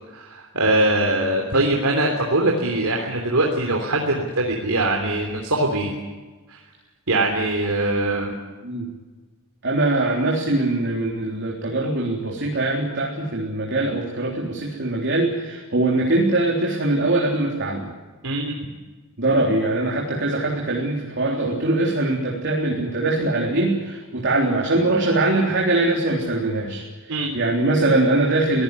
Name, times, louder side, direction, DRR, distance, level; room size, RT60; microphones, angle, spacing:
voice 1, 0.1-5.9 6.5-6.6 7.1-8.4 18.2-18.5 27.1-27.4, right 2 dB, 80° right, 1 dB, 3.2 m, -22 dB
voice 2, 9.6-17.9 19.2-28.6, right 2 dB, 55° right, -1 dB, 3.7 m, -22 dB
23.5 x 17.5 x 9.7 m, 1.3 s
head